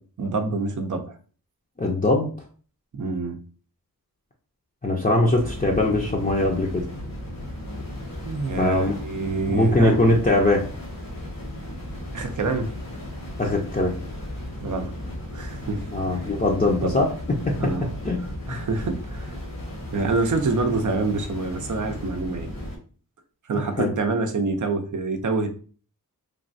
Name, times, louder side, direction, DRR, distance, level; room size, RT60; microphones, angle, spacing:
voice 1, 0.2-1.2 2.9-3.4 8.2-10.0 12.1-12.7 14.6-14.9 15.3-16.2 16.7-17.0 17.6-17.9 18.5-19.3 19.9-22.5 23.4-25.5, right 3 dB, 55° right, 7 dB, 0.6 m, -26 dB
voice 2, 1.8-2.3 4.8-6.9 8.6-8.9 9.5-10.6 13.4-13.9 15.9-17.1 17.5-17.6 18.0-18.2 23.8-23.9, left 2 dB, 25° left, -2 dB, 0.6 m, -21 dB
sound 1, 5.4-22.8, left 1 dB, 65° left, 1.1 m, -35 dB
3.2 x 2.2 x 2.6 m, 0.40 s
cardioid pair, 55°, 37 cm